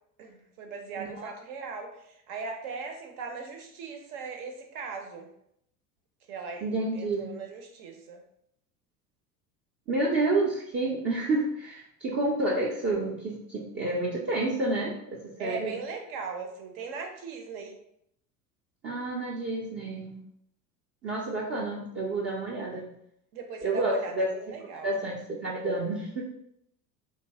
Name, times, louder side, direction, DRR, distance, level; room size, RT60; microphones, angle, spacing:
voice 1, 0.2-5.3 6.3-8.2 15.4-17.8 23.3-24.9, right 4 dB, 60° right, 4 dB, 0.7 m, -39 dB
voice 2, 1.0-1.3 6.6-7.3 9.9-15.7 18.8-20.2 21.0-22.9 23.6-24.3 24.8-26.2, right 2 dB, 25° right, -4 dB, 0.4 m, -29 dB
2.8 x 2.3 x 2.7 m, 0.73 s
figure-of-eight pair, 70°, 49 cm